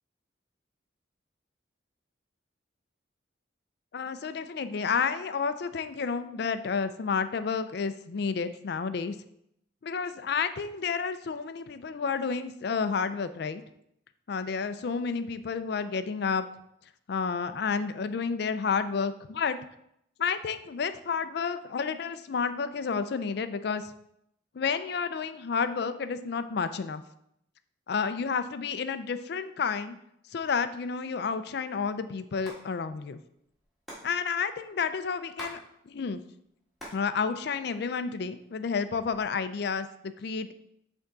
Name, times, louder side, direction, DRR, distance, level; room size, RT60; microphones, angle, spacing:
voice 1, 3.9-9.2 9.8-13.6 14.3-16.5 17.1-19.6 20.2-23.9 24.5-27.0 27.9-30.0 30.3-33.2 34.0-36.2 36.9-40.5, left 5 dB, 55° left, 11 dB, 0.4 m, -30 dB
Hands, 32.5-32.6 32.9-33.0 33.2-35.6 35.9-37.1 37.4-38.2 38.8-39.4, equal, ahead, 1.7 m, -45 dB
8.0 x 3.5 x 3.9 m, 0.76 s
head